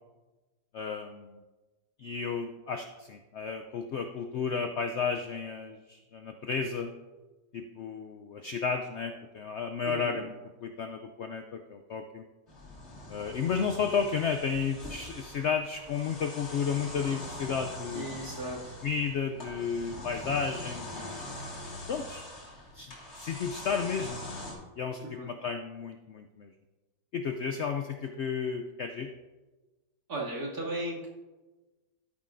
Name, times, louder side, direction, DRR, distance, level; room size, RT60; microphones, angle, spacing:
voice 1, 0.7-1.4 2.0-6.9 7.5-10.3 10.6-12.2 13.1-18.2 18.8-21.3 21.9-22.3 22.7-24.2 24.8-26.5 27.1-29.1, left 6 dB, 90° left, 6 dB, 0.6 m, -33 dB
voice 2, 9.8-10.2 17.9-18.7 25.0-25.3 30.1-31.1, right 1 dB, 60° right, -6 dB, 2.8 m, -36 dB
sound 1, 12.5-24.5, left 1 dB, 40° left, 2.2 m, -43 dB
13.0 x 9.7 x 2.5 m, 1.2 s
omnidirectional pair, 1.8 m